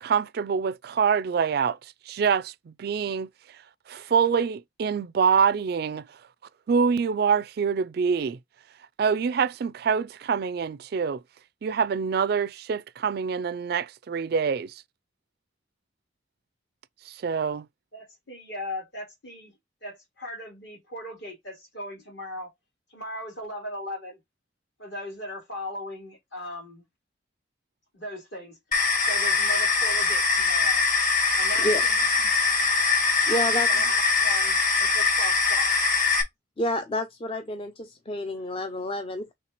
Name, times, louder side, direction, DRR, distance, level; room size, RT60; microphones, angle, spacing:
voice 1, 0.0-1.8 2.1-2.5 2.8-3.3 3.9-6.0 6.7-8.4 9.0-11.2 11.6-14.7 17.1-17.6, right 6 dB, 55° right, 0.3 m, -25 dB
voice 2, 17.9-19.5 19.8-22.5 22.9-24.2 24.8-26.8 27.9-28.6 28.9-30.8 31.3-32.0 33.3-35.7 38.4-38.5, left 1 dB, 60° left, 3.5 m, -38 dB
sound 1, 28.7-36.2, left 4 dB, 45° left, 1.7 m, -22 dB
voice 3, 31.6-31.9 33.3-33.9 36.6-39.3, left 1 dB, 30° left, 0.5 m, -29 dB
5.7 x 3.2 x 2.9 m
head